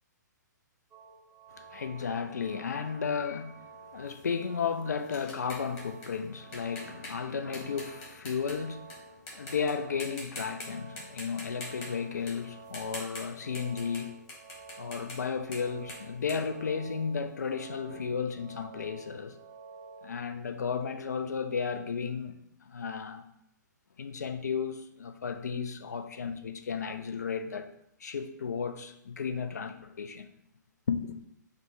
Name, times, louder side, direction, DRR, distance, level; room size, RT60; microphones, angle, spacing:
sound 1, 0.9-20.1, right 4 dB, 15° right, 0.8 m, -51 dB
voice 1, 1.6-3.6 3.9-9.0 9.3-14.2 14.8-19.4 20.0-22.3 22.6-23.2 24.0-27.7 28.0-30.3 30.9-31.2, left 6 dB, 60° left, 0.5 m, -34 dB
sound 2, 4.1-8.9 9.3-9.7 10.0-10.7 11.0-17.3, left 1 dB, 25° left, 1.4 m, -45 dB
4.9 x 2.2 x 4.7 m
figure-of-eight pair, 120°, 10 cm